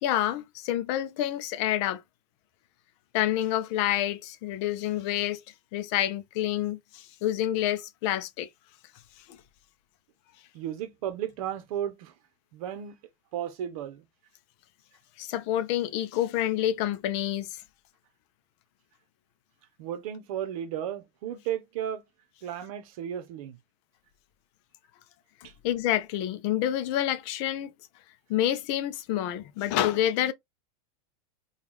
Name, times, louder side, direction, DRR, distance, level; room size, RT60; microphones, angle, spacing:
voice 1, 0.0-2.0 3.1-5.4 5.7-8.5 9.3-9.4 15.2-17.6 25.6-27.7 28.3-30.3, left 12 dB, 45° left, 0.5 m, -28 dB
voice 2, 10.5-12.1 12.5-13.0 13.3-14.0 19.8-22.0 22.4-23.6, right 10 dB, 60° right, 0.8 m, -34 dB
3.6 x 2.4 x 3.0 m
supercardioid pair, 145°, 20 cm